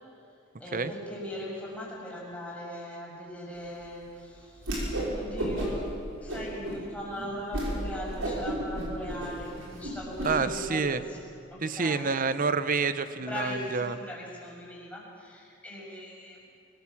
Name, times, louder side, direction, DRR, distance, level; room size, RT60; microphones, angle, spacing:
voice 1, 0.6-4.7 5.1-5.9 6.2-11.2 11.5-12.1 13.2-16.4, equal, 5° left, -4 dB, 6.2 m, -39 dB
Whoosh swoosh swish, 4.6-5.1 5.4-5.9 6.3-6.8 7.1-7.2 7.5-7.7 8.0-10.3, right 1 dB, 90° right, 6.2 m, -32 dB
voice 2, 10.2-11.0 11.6-14.0, right 4 dB, 45° right, 13 dB, 0.9 m, -28 dB
24.0 x 19.5 x 7.3 m, 2.5 s
head